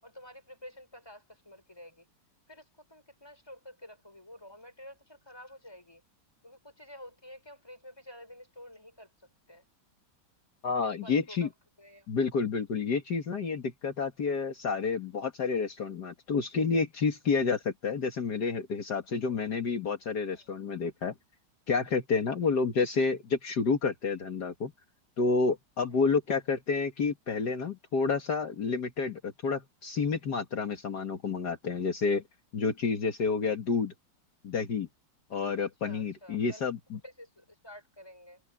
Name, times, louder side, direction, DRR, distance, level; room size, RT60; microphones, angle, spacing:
voice 1, 0.0-2.0 2.5-6.0 6.4-9.1 9.5-9.6 10.7-11.5 11.8-12.1 19.2-19.4 22.3-22.4 25.9-26.1 35.6-36.7 37.0-38.4, left 1 dB, 15° left, 6.2 m, -50 dB
voice 2, 10.6-11.5 12.1-21.1 21.7-24.7 25.2-32.2 32.5-33.9 34.4-34.9 35.3-37.0, left 4 dB, 65° left, 2.3 m, -29 dB
omnidirectional pair, 1.9 m